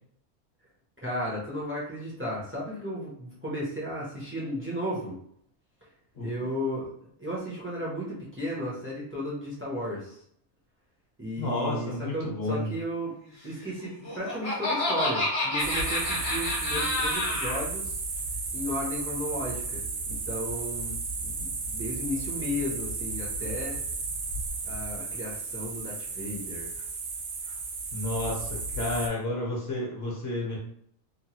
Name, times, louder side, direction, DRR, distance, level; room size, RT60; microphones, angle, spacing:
voice 1, 1.0-5.2 6.2-6.9 7.2-10.2 11.2-13.1 13.4-18.0 18.5-23.8 24.6-26.7, equal, 15° right, -6 dB, 0.6 m, -34 dB
voice 2, 11.4-12.7 27.9-30.6, left 2 dB, 55° left, -3 dB, 1.1 m, -31 dB
Laughter, 13.8-17.6, left 1 dB, 30° left, 0.7 m, -29 dB
sound 1, 15.6-29.1, right 3 dB, 85° right, 1.0 m, -34 dB
3.0 x 2.2 x 2.9 m, 0.68 s
omnidirectional pair, 1.4 m